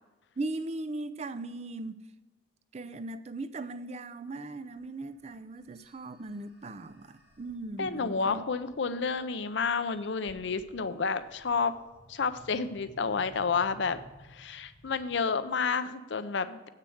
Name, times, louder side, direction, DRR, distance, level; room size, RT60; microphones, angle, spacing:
voice 1, 0.4-2.0 2.7-8.4, right 2 dB, 35° right, 0.4 m, -38 dB
sound 1, 4.6-15.2, equal, 55° right, 2.1 m, -58 dB
voice 2, 7.8-11.7 12.1-14.0 14.3-16.7, left 5 dB, 70° left, 0.6 m, -30 dB
8.2 x 6.7 x 6.3 m
head